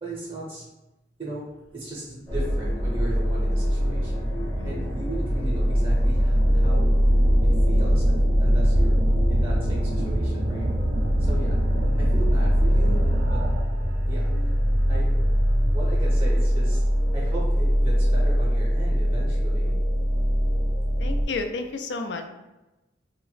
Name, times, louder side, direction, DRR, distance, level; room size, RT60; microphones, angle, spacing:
voice 1, 0.0-0.7 1.2-1.5 1.7-4.2 4.6-6.9 7.5-8.9 9.3-10.7 11.2-11.6 12.0-13.5 14.1-14.5 14.9-15.2 15.7-16.8 17.1-19.8, right 2 dB, 30° right, -5 dB, 0.6 m, -37 dB
sound 1, 2.3-21.2, equal, 15° left, 0.5 m, -22 dB
sound 2, 3.2-13.9, right 1 dB, 80° right, 0.4 m, -31 dB
voice 2, 4.6-4.9 11.1-11.4 19.6-19.8 21.0-22.3, left 3 dB, 75° left, 6 dB, 0.3 m, -33 dB
sound 3, 8.5-15.9, equal, 90° left, 1.1 m, -33 dB
2.5 x 2.2 x 3.8 m, 1.0 s
head